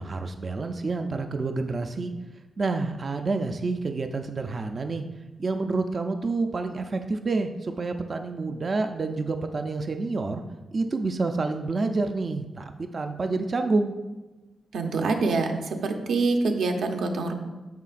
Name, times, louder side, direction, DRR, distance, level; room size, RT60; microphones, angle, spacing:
voice 1, 0.0-2.1 2.6-5.0 5.4-10.4 10.7-13.9, right 3 dB, 35° right, 6 dB, 0.4 m, -28 dB
voice 2, 14.7-17.3, right 3 dB, 85° right, 4 dB, 0.9 m, -25 dB
9.3 x 6.5 x 2.5 m, 1.1 s
wide cardioid pair, 145°, 0 cm